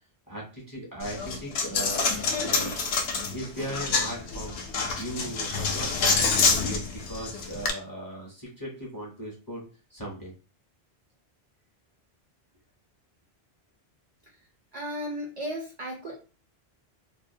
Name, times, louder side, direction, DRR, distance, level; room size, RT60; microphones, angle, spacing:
voice 1, 0.3-2.8 3.3-4.6 5.0-6.3 6.6-9.6 9.9-10.3, right 1 dB, 25° left, -3 dB, 0.6 m, -38 dB
Coin (dropping), 1.0-7.7, left 4 dB, 75° left, 0.8 m, -27 dB
voice 2, 14.7-16.2, equal, 50° right, -1 dB, 0.5 m, -34 dB
2.3 x 2.0 x 2.6 m, 0.33 s
omnidirectional pair, 1.1 m